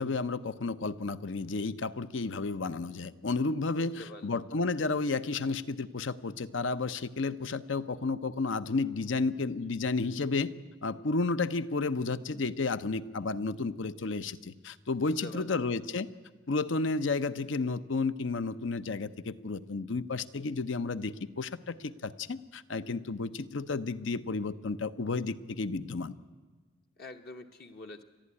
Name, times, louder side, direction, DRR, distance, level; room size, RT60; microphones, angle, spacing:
voice 1, 0.0-10.5 10.8-16.1 16.5-26.2, left 3 dB, 70° left, 14 dB, 0.7 m, -32 dB
voice 2, 3.8-4.4 15.0-15.6 27.0-28.0, left 1 dB, 50° left, 4 dB, 1.0 m, -46 dB
29.5 x 11.5 x 9.7 m, 1.3 s
head